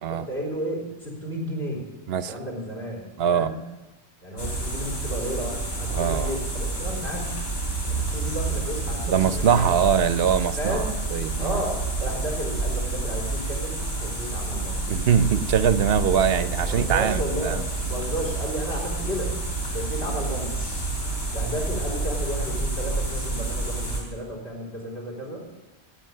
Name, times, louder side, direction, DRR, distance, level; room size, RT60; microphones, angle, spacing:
voice 1, 0.1-1.9 2.3-3.7 4.2-7.5 7.9-9.7 10.6-10.9 11.4-14.9 16.6-19.4 19.7-20.6 21.3-25.5, equal, 65° left, 0 dB, 4.4 m, -33 dB
voice 2, 3.2-3.5 5.9-6.4 9.1-11.6 14.9-17.6 20.1-20.2, right 8 dB, 65° right, 14 dB, 0.8 m, -23 dB
sound 1, 4.4-24.0, right 3 dB, 80° left, 3.4 m, -29 dB
17.5 x 8.3 x 6.5 m, 1.1 s
omnidirectional pair, 1.2 m